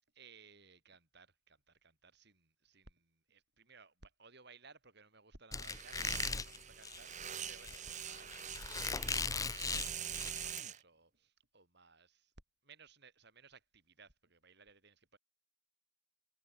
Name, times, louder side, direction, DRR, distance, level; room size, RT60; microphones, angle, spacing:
voice 1, 0.1-12.3 12.6-15.2, right 4 dB, 55° right, 6.5 m, -61 dB
Squeak, 5.5-10.6, left 4 dB, 15° left, 0.7 m, -39 dB
sound 1, 5.6-10.8, right 9 dB, 35° right, 1.6 m, -45 dB
head